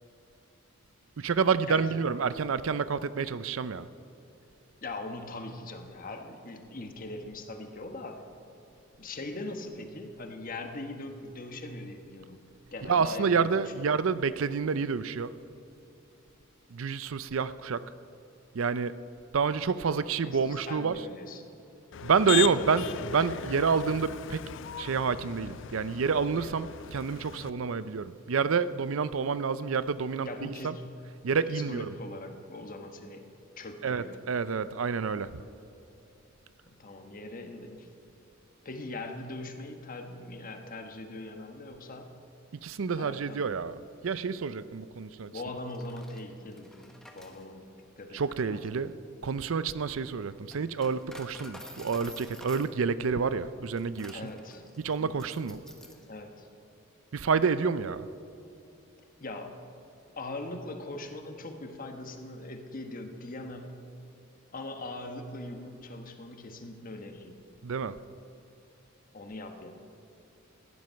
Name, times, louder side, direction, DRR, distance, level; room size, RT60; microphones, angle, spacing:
voice 1, 1.2-3.9 12.8-15.3 16.7-17.8 18.5-18.9 19.3-21.0 22.0-22.9 23.1-24.4 24.8-30.7 31.2-31.9 33.8-35.4 42.6-43.8 44.0-45.3 48.1-48.9 49.2-54.2 54.8-55.6 57.1-58.1 67.6-67.9, right 5 dB, 75° right, 15 dB, 0.5 m, -28 dB
voice 2, 1.7-2.0 4.8-8.2 9.0-12.4 12.7-13.9 20.2-21.4 22.3-23.3 30.2-30.9 31.5-33.3 33.6-34.2 36.7-37.9 38.6-42.1 43.0-43.5 45.2-48.6 54.1-54.6 55.0-55.2 56.0-56.5 59.2-59.6 60.2-63.8 64.5-67.4 69.1-69.7, left 2 dB, 45° left, 5 dB, 1.3 m, -41 dB
Motor vehicle (road), 21.9-27.5, left 11 dB, 60° left, 0.4 m, -37 dB
Coin (dropping), 45.6-56.1, left 1 dB, 5° left, 1.1 m, -51 dB
15.0 x 11.0 x 5.7 m, 3.0 s
head